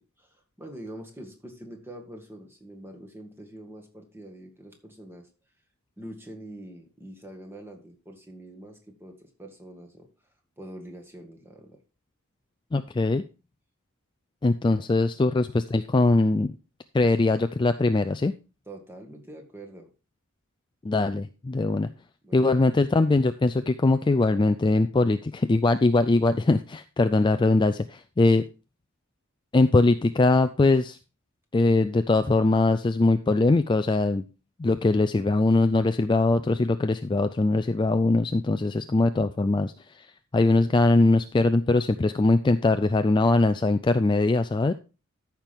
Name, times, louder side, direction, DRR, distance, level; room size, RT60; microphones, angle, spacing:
voice 1, 0.0-5.3 6.0-10.1 10.6-11.8 14.7-14.8 18.7-19.9 22.2-22.6 27.7-27.9, right 1 dB, 10° right, 2 dB, 1.9 m, -44 dB
voice 2, 12.7-13.2 14.4-16.5 16.9-18.3 20.8-21.9 22.3-28.4 29.5-31.0 31.5-34.2 34.6-40.1 40.3-44.7, left 2 dB, 20° left, 10 dB, 0.3 m, -22 dB
13.5 x 5.9 x 3.5 m, 0.32 s
head